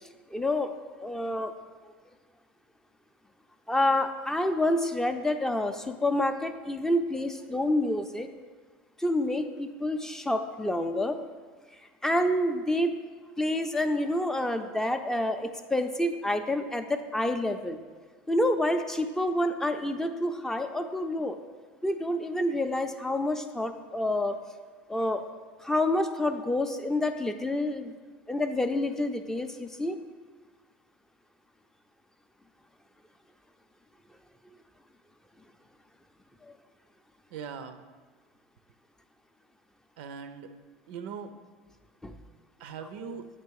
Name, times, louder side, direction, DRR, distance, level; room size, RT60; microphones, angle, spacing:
voice 1, 0.3-0.7 1.0-1.5 3.7-8.3 9.0-11.2 12.0-13.0 13.4-17.8 18.3-21.4 21.8-24.4 24.9-25.3 25.6-27.9 28.3-30.0 36.4-36.5 42.0-42.2, left 1 dB, 10° left, 7 dB, 0.4 m, -28 dB
voice 2, 37.3-37.8 40.0-40.5 40.9-41.3 42.6-43.3, right 6 dB, 75° right, 9 dB, 0.4 m, -40 dB
8.1 x 3.0 x 4.6 m, 1.5 s
hypercardioid pair, 95°, 6 cm